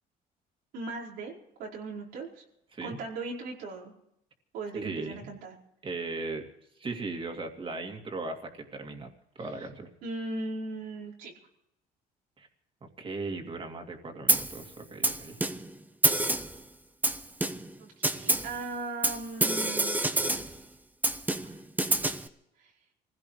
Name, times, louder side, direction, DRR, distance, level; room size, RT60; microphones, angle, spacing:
voice 1, 0.7-2.4 2.8-3.9 4.5-5.5 10.0-11.3 17.8-20.6 21.4-21.6 22.6-22.7, right 3 dB, 90° right, -4 dB, 5.0 m, -38 dB
voice 2, 4.7-5.2 5.8-6.5 6.8-9.1 9.4-9.9 12.4-12.5 13.0-15.4, right 3 dB, 30° right, 4 dB, 2.6 m, -37 dB
Snare drum, 14.3-14.6 15.0-15.7 16.0-16.6 17.0-17.7 18.0-18.6 19.0-20.6 21.0-22.3, right 2 dB, 10° right, 1.1 m, -27 dB
26.0 x 16.0 x 3.3 m, 0.81 s
cardioid pair, 110°, 17 cm